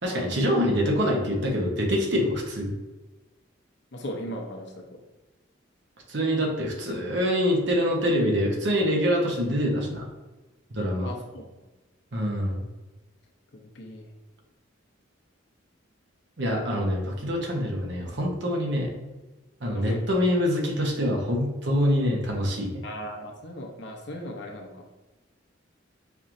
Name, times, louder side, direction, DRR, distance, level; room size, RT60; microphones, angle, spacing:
voice 1, 0.0-2.7 6.1-10.1 10.7-11.1 12.1-12.7 16.4-18.9 19.6-22.8, equal, 60° right, 0 dB, 0.9 m, -25 dB
voice 2, 3.9-4.9 11.0-11.5 13.5-14.1 19.7-20.1 22.8-24.9, equal, 60° left, 1 dB, 0.7 m, -37 dB
5.3 x 3.0 x 2.6 m, 1.1 s
head